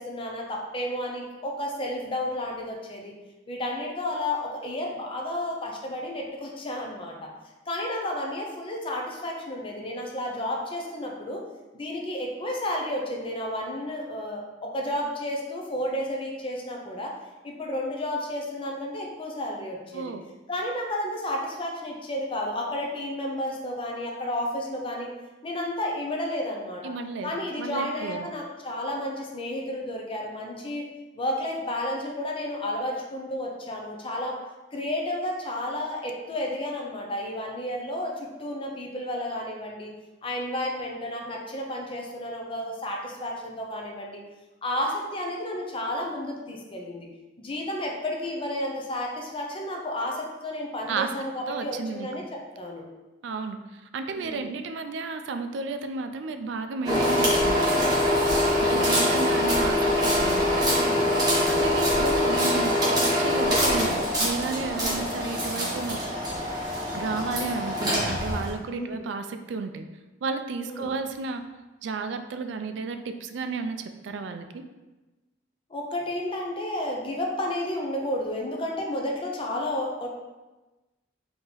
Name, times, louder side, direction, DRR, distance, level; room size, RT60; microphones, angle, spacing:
voice 1, 0.0-3.1 3.5-7.3 7.7-11.4 11.7-17.1 17.4-20.1 20.5-25.1 25.4-26.9 27.2-30.9 31.2-34.4 34.7-39.9 40.2-44.2 44.6-47.1 47.4-52.2 52.6-52.8 54.1-54.5 58.3-58.9 60.6-61.2 64.8-65.1 68.7-69.0 70.6-70.9 75.7-80.1, left 1 dB, 30° left, -1 dB, 0.6 m, -32 dB
voice 2, 26.8-27.3 27.6-28.2 50.9-51.1 51.5-52.1 53.2-53.6 53.9-57.6 58.6-60.4 61.5-66.0 66.9-69.9 70.2-71.4 71.8-73.8 74.0-74.6, right 4 dB, 70° right, 8 dB, 0.3 m, -32 dB
sound 1, 56.8-68.5, left 1 dB, 20° right, 1.2 m, -24 dB
3.8 x 2.9 x 3.9 m, 1.1 s
head